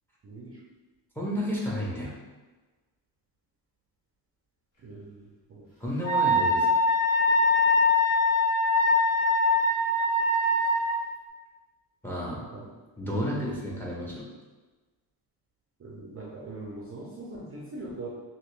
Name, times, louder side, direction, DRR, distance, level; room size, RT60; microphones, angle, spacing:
voice 1, 0.2-0.6 4.8-5.7 12.5-12.7 13.2-13.5 15.8-18.1, right 2 dB, 30° right, -4 dB, 0.5 m, -41 dB
voice 2, 1.2-2.1 5.8-6.7 12.0-12.5 13.0-14.2, equal, 5° left, -4 dB, 0.7 m, -31 dB
Wind instrument woodwind instrument, 6.0-10.9, left 2 dB, 45° left, 1.0 m, -23 dB
3.0 x 2.9 x 3.1 m, 1.2 s
cardioid pair, 125°, 46 cm